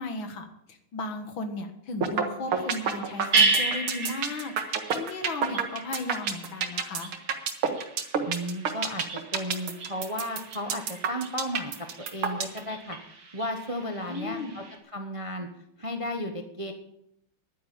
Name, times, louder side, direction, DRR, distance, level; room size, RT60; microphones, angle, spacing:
voice 1, 0.0-7.1 14.1-14.5, left 2 dB, 65° left, 7 dB, 2.3 m, -35 dB
sound 1, 2.0-2.2 2.5-12.6, right 7 dB, 90° right, 2.3 m, -28 dB
sound 2, 2.5-14.8, right 3 dB, 55° right, 2.5 m, -33 dB
voice 2, 8.2-9.0 9.3-13.0 13.3-14.6 14.9-15.5 15.8-16.7, equal, 20° right, 5 dB, 0.9 m, -34 dB
11.0 x 9.8 x 8.5 m, 0.76 s
omnidirectional pair, 2.3 m